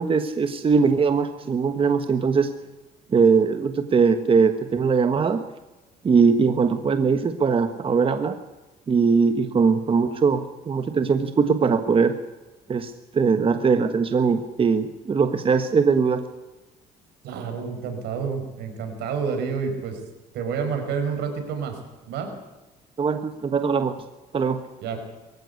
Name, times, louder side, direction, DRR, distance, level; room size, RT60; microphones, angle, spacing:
voice 1, 0.0-2.5 3.1-5.4 6.0-8.4 8.9-12.2 12.7-16.2 23.0-23.9 24.3-24.6, right 5 dB, 30° right, 8 dB, 1.3 m, -21 dB
voice 2, 17.2-20.0 20.3-21.8 22.1-22.3 24.8-25.0, right 6 dB, 80° right, 5 dB, 5.5 m, -29 dB
22.5 x 15.0 x 8.4 m, 1.1 s
cardioid pair, 110°, 17 cm